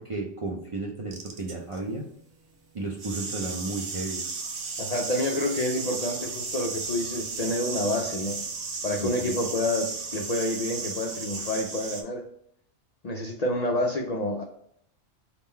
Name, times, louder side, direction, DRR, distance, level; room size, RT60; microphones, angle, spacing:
voice 1, 0.0-2.1 2.7-4.2 9.0-9.3, right 3 dB, 50° right, -2 dB, 0.4 m, -33 dB
sound 1, 1.1-1.8 3.0-12.0, right 4 dB, 65° right, 0.9 m, -34 dB
voice 2, 4.8-8.4 8.8-12.2 13.0-14.4, left 1 dB, 65° left, 1 dB, 0.4 m, -28 dB
3.7 x 2.4 x 4.2 m, 0.68 s
omnidirectional pair, 1.2 m